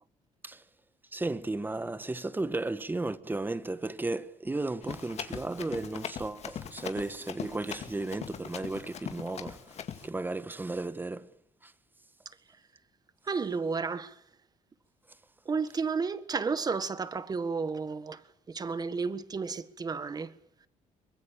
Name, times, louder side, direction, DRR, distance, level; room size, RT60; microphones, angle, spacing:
voice 1, 1.1-11.3 11.6-11.7, right 2 dB, 15° right, 1.3 m, -34 dB
Run, 4.8-10.1, left 8 dB, 55° left, 2.2 m, -41 dB
voice 2, 13.3-14.2 15.4-18.2 18.5-20.3, right 5 dB, 30° right, 1.7 m, -32 dB
24.0 x 21.5 x 8.7 m
cardioid pair, 125°, 13 cm